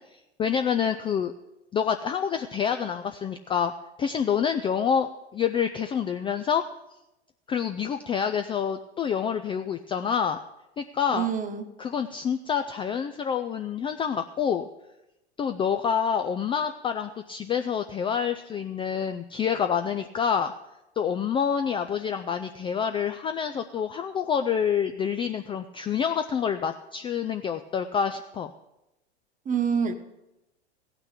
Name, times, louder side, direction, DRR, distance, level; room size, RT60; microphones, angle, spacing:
voice 1, 0.4-1.3 1.7-3.7 4.0-6.6 7.5-10.4 10.8-11.3 11.8-14.7 15.4-20.5 21.0-28.5, left 7 dB, 15° left, 7 dB, 0.4 m, -27 dB
voice 2, 11.1-11.7 29.4-29.9, right 7 dB, 25° right, 9 dB, 1.2 m, -26 dB
16.0 x 6.0 x 8.2 m, 0.92 s
figure-of-eight pair, 85°, 34 cm